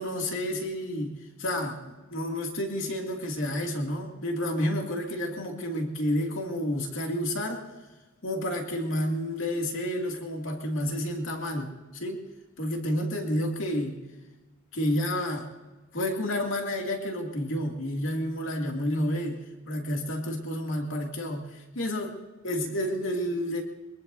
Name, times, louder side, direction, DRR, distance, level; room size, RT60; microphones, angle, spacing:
voice 1, 0.0-7.6 8.2-12.2 12.6-14.0 14.7-15.5 15.9-19.4 19.7-22.1 22.4-23.6, left 1 dB, 75° left, 1 dB, 2.5 m, -30 dB
23.0 x 22.5 x 2.7 m, 1.1 s
head